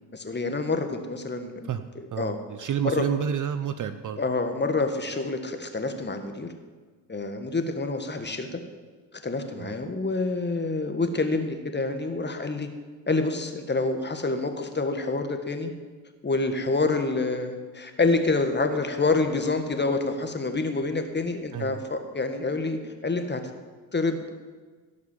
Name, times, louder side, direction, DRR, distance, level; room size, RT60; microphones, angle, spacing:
voice 1, 0.1-2.4 2.8-3.0 4.2-6.5 7.1-8.6 9.2-12.7 13.1-15.7 16.2-23.4 23.9-24.4, left 3 dB, 20° left, 7 dB, 1.8 m, -27 dB
voice 2, 2.1-4.2 9.6-9.8 21.5-21.8, right 8 dB, 40° right, 11 dB, 0.8 m, -30 dB
16.5 x 6.0 x 7.4 m, 1.4 s
hypercardioid pair, 70°, 49 cm